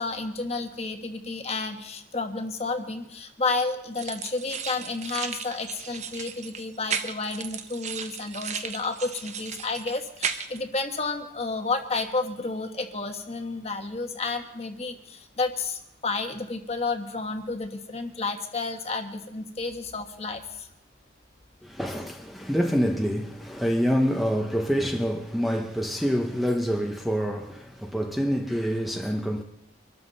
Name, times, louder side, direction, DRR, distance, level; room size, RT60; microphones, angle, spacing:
voice 1, 0.0-20.7, left 3 dB, 30° left, 1.3 m, -31 dB
sound 1, 4.0-10.6, right 7 dB, 35° right, 0.8 m, -35 dB
voice 2, 21.6-29.4, equal, ahead, 0.9 m, -26 dB
24.5 x 13.0 x 4.1 m
head